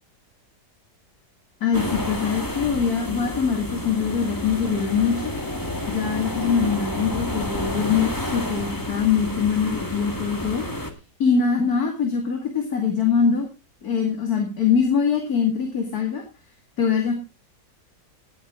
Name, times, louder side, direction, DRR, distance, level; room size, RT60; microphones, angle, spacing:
voice 1, 1.6-5.3 5.9-10.6 11.2-13.5 13.8-16.2 16.8-17.1, left 6 dB, 55° left, 2 dB, 2.7 m, -23 dB
sound 1, 1.7-10.9, left 1 dB, 10° left, 1.6 m, -30 dB
17.5 x 9.5 x 3.7 m, 0.30 s
omnidirectional pair, 1.9 m